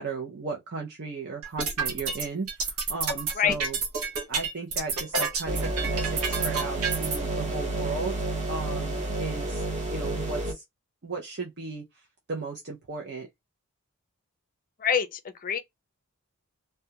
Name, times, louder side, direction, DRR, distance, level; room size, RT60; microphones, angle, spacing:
voice 1, 0.0-3.8 4.3-8.2 8.5-9.6 9.9-10.6 11.0-11.8 12.3-13.3, right 4 dB, 50° right, 0.6 m, -35 dB
sound 1, 1.4-7.2, right 4 dB, 70° right, 0.9 m, -29 dB
sound 2, 5.5-10.5, right 2 dB, 30° right, 1.0 m, -30 dB
voice 2, 14.8-15.6, left 7 dB, 40° left, 0.4 m, -26 dB
2.3 x 2.2 x 2.7 m
head